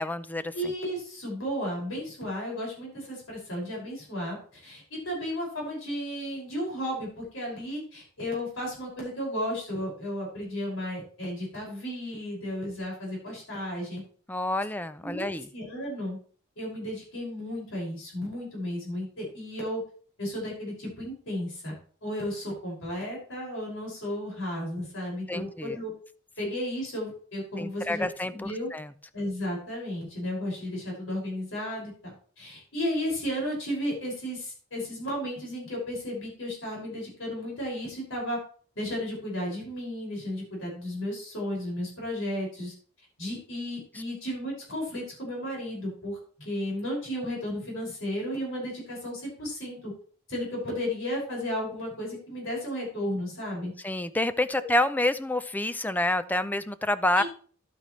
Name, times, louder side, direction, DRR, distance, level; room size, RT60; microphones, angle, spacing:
voice 1, 0.0-0.5 14.3-15.5 25.3-25.8 27.6-28.9 53.8-57.2, left 1 dB, 10° left, 13 dB, 0.5 m, -28 dB
voice 2, 0.5-14.0 15.0-15.3 15.5-16.2 16.6-19.8 20.2-25.9 26.4-28.0 28.3-28.7 29.1-38.4 38.8-42.7 43.2-49.9 50.3-53.7 57.2-57.3, equal, 70° left, -2 dB, 5.8 m, -34 dB
11.5 x 9.1 x 3.2 m, 0.44 s
head